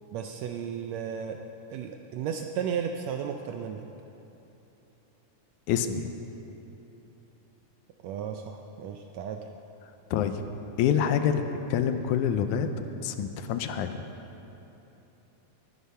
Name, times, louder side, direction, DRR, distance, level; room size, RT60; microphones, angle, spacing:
voice 1, 0.1-1.4 1.7-3.9 8.0-9.4, right 7 dB, 80° right, 4 dB, 1.6 m, -34 dB
voice 2, 5.7-6.1 10.1-10.4 10.8-11.4 11.7-12.7 13.0-14.0, left 8 dB, 80° left, 8 dB, 2.0 m, -26 dB
19.5 x 8.0 x 5.6 m, 3.0 s
omnidirectional pair, 3.6 m